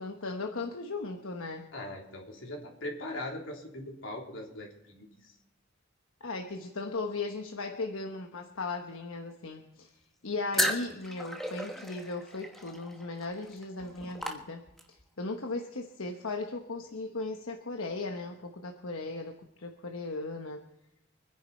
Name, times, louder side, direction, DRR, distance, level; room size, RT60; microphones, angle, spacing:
voice 1, 0.0-1.7 6.2-9.9 10.2-20.6, left 3 dB, 85° left, 3 dB, 1.1 m, -37 dB
voice 2, 1.7-5.3, left 1 dB, 65° left, -1 dB, 3.5 m, -40 dB
sound 1, 10.5-15.0, equal, ahead, 1.3 m, -35 dB
25.5 x 10.5 x 4.4 m, 0.90 s
head